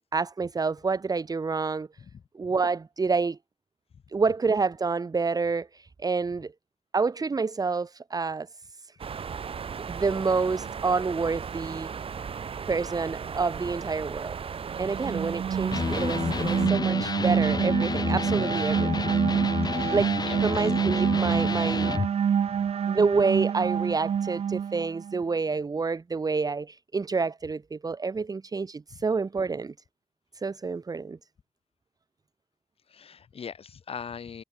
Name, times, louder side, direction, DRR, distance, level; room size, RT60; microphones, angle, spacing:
voice 1, 0.0-1.9 2.3-3.4 4.1-6.5 6.9-8.5 8.8-9.0 9.9-11.9 12.7-14.3 14.8-19.1 19.9-21.9 22.9-29.7 30.3-31.2, right 4 dB, 40° right, 1.1 m, -28 dB
sound 1, 9.0-16.7, right 6 dB, 70° right, 2.1 m, -36 dB
sound 2, 14.7-25.2, right 8 dB, 85° right, 1.9 m, -27 dB
Electric guitar, 15.7-22.1, left 4 dB, 40° left, 1.2 m, -30 dB
voice 2, 20.3-20.7 22.5-22.6 32.9-34.4, left 6 dB, 70° left, 4.4 m, -41 dB
cardioid pair, 85°, 10 cm